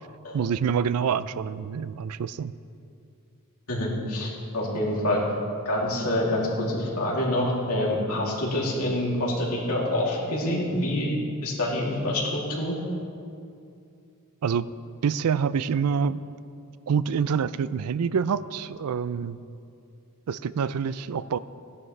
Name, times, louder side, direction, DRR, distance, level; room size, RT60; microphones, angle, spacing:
voice 1, 0.3-2.5 14.4-14.7 15.0-16.2 16.9-19.4 20.3-21.4, right 6 dB, 75° right, 16 dB, 0.4 m, -26 dB
voice 2, 3.7-5.2 5.6-11.1 11.4-12.8, left 1 dB, 80° left, -4 dB, 2.9 m, -26 dB
17.5 x 11.0 x 3.3 m, 2.5 s
head